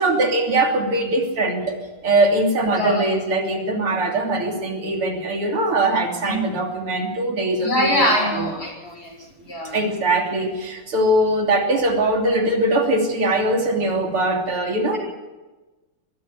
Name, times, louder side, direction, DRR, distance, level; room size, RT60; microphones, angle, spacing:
voice 1, 0.0-1.8 2.0-8.5 9.7-15.0, right 2 dB, 85° right, 2 dB, 4.0 m, -21 dB
voice 2, 2.6-3.1 6.2-6.4 7.6-9.1 9.4-9.8, equal, 45° left, 0 dB, 7.3 m, -23 dB
22.0 x 15.0 x 8.2 m, 1.1 s
omnidirectional pair, 2.4 m